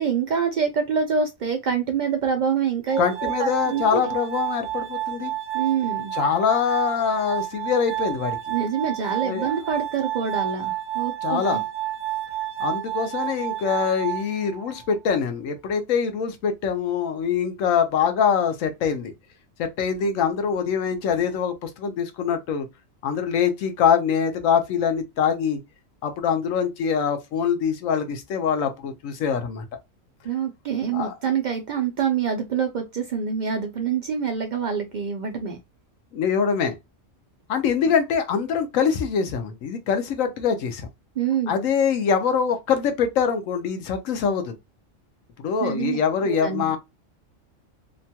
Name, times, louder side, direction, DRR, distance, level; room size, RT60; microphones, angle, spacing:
voice 1, 0.0-4.0 5.5-6.1 8.5-11.6 30.2-35.6 37.7-37.8 41.2-41.5 45.6-46.8, right 6 dB, 85° right, 0.4 m, -26 dB
Glass, 2.9-14.9, right 14 dB, 55° right, 0.7 m, -30 dB
voice 2, 3.0-5.3 6.1-8.4 9.2-9.5 11.2-11.6 12.6-19.1 19.6-22.7 23.0-25.6 26.0-29.6 30.9-31.1 36.1-36.8 37.5-40.9 41.5-44.6 45.4-46.8, left 7 dB, 80° left, 1.0 m, -24 dB
2.9 x 2.2 x 2.7 m
omnidirectional pair, 1.4 m